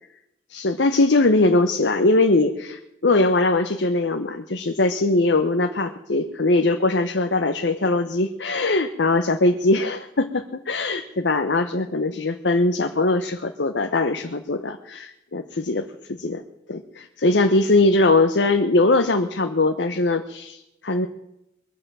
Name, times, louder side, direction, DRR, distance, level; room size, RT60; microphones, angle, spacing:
voice 1, 0.5-16.4 16.7-21.1, left 2 dB, 80° left, 5 dB, 1.0 m, -21 dB
22.5 x 7.8 x 6.3 m, 0.82 s
head